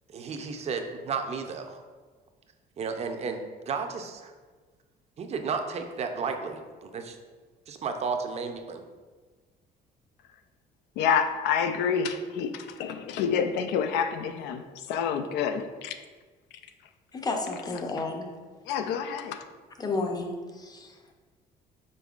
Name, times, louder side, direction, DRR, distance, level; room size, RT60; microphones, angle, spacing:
voice 1, 0.1-1.8 2.8-3.4 3.7-4.3 5.2-7.2 7.7-8.8, right 5 dB, 40° right, 5 dB, 0.5 m, -33 dB
voice 2, 11.0-14.6 14.9-16.0 18.0-18.1 18.7-19.5, left 7 dB, 90° left, 9 dB, 0.4 m, -28 dB
voice 3, 17.1-18.3 19.8-20.3 20.7-20.9, left 3 dB, 25° left, 3 dB, 0.6 m, -31 dB
5.3 x 4.1 x 2.4 m, 1.4 s
cardioid pair, 110°, 17 cm